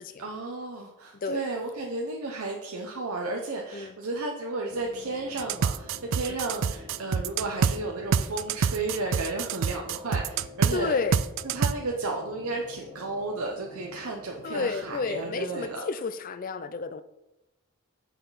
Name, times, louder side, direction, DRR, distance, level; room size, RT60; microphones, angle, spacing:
voice 1, 0.2-10.9 11.4-15.8, right 2 dB, 75° right, 1 dB, 0.8 m, -33 dB
voice 2, 1.1-1.5 3.7-3.9 10.7-11.2 14.4-17.0, left 4 dB, 40° left, 13 dB, 0.4 m, -31 dB
sound 1, 4.7-15.7, left 1 dB, 35° right, 1.1 m, -47 dB
sound 2, 5.4-7.8 8.1-10.8 11.1-11.7, right 6 dB, 60° right, 0.3 m, -26 dB
8.3 x 5.8 x 4.1 m, 0.93 s
head